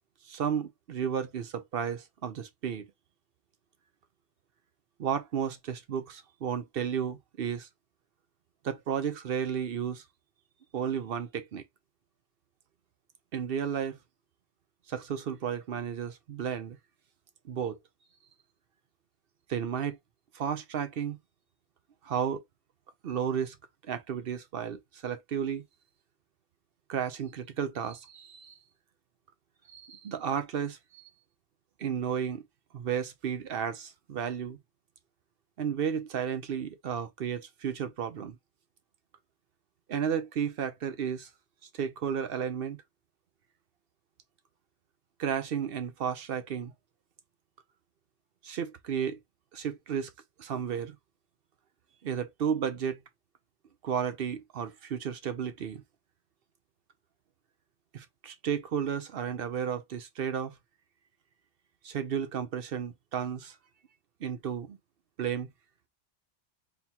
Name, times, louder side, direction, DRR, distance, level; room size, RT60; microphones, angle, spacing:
voice 1, 0.3-2.9 5.0-7.7 8.6-10.0 10.7-11.6 13.3-14.0 14.9-16.8 17.4-17.8 19.5-20.0 20.3-21.2 22.0-22.4 23.0-23.6 23.8-25.6 26.9-28.5 29.7-31.0 31.8-32.4 32.7-34.6 35.6-38.4 39.9-41.3 41.7-42.8 45.2-46.7 48.4-49.2 49.5-50.1 50.4-51.0 52.0-53.0 53.8-55.8 57.9-60.6 61.8-63.6 64.2-64.8 65.2-65.5, right 8 dB, 60° right, 0.8 m, -33 dB
3.9 x 2.8 x 2.8 m
omnidirectional pair, 1.2 m